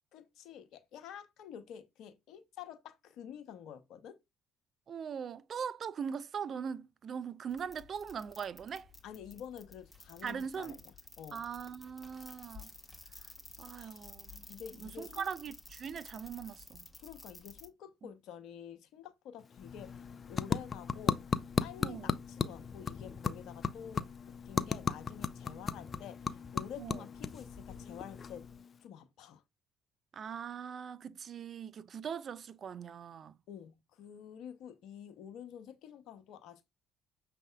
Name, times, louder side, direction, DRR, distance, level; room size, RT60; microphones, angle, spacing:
voice 1, 0.1-4.2 9.0-11.4 13.7-14.1 14.5-15.2 17.0-19.9 20.3-21.2 21.6-28.5 28.8-29.4 33.5-36.7, left 9 dB, 65° left, 0.8 m, -49 dB
voice 2, 4.9-8.9 10.2-10.8 11.3-12.7 13.2-13.3 13.6-14.5 14.8-16.9 18.0-18.1 21.8-22.1 25.5-25.6 26.8-27.1 30.1-33.4, right 7 dB, 50° right, 0.4 m, -41 dB
sound 1, 7.5-17.7, left 2 dB, 10° left, 1.2 m, -53 dB
sound 2, 19.4-28.8, left 5 dB, 45° left, 0.4 m, -37 dB
6.3 x 3.4 x 2.2 m
hypercardioid pair, 50°, 0 cm